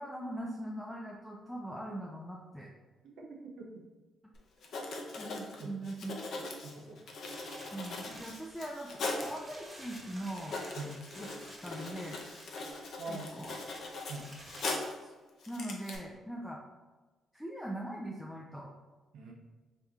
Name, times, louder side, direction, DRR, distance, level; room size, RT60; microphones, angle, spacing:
voice 1, 0.0-2.7 5.2-6.5 7.7-10.6 11.2-11.3 11.6-12.2 13.1-13.5 15.0-15.1 15.5-16.6 17.3-18.7, right 1 dB, 5° left, -3 dB, 0.4 m, -41 dB
voice 2, 3.0-3.9 5.6-5.7 6.6-7.0 10.7-10.9 13.0-13.3 14.1-14.3 19.1-19.3, right 3 dB, 80° right, -1 dB, 0.6 m, -43 dB
Writing, 4.3-4.4 4.6-9.4 9.9-10.0 10.3-15.0 15.4-16.0, left 3 dB, 65° left, 0.6 m, -40 dB
sound 1, 7.3-14.6, right 1 dB, 20° right, 1.1 m, -52 dB
3.4 x 2.8 x 3.6 m, 1.3 s
cardioid pair, 90°, 0 cm